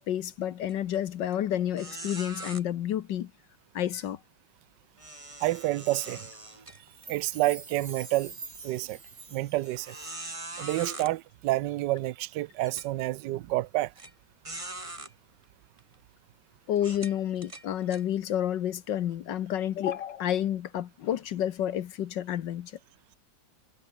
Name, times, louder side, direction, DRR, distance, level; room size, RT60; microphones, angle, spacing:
voice 1, 0.0-3.3 3.7-4.2 16.7-22.7, left 11 dB, 70° left, 1.5 m, -30 dB
sound 1, 0.7-1.0 1.3-1.4 1.8-2.6 5.0-7.3 7.8-7.9 8.5-8.6 9.6-11.1 12.0-12.1 12.6-12.9 14.0-14.1 14.4-15.1 15.8-15.9 16.8-18.0, right 2 dB, 15° right, 2.3 m, -42 dB
voice 2, 5.4-6.3 7.1-8.3 8.6-9.0 9.3-10.0 10.6-13.9, right 17 dB, 70° right, 1.2 m, -29 dB
Chime, 6.8-10.4 10.7-10.8, right 4 dB, 50° right, 3.9 m, -46 dB
omnidirectional pair, 2.1 m